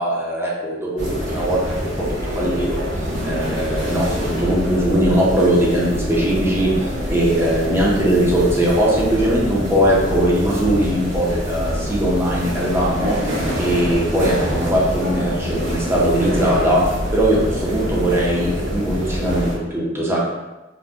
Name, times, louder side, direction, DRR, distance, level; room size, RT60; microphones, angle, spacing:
voice 1, 0.0-13.2 13.6-16.8 17.1-20.2, right 1 dB, 15° right, -5 dB, 0.6 m, -20 dB
sound 1, 1.0-19.5, equal, 85° right, 0.8 m, -25 dB
2.5 x 2.1 x 3.5 m, 1.1 s
head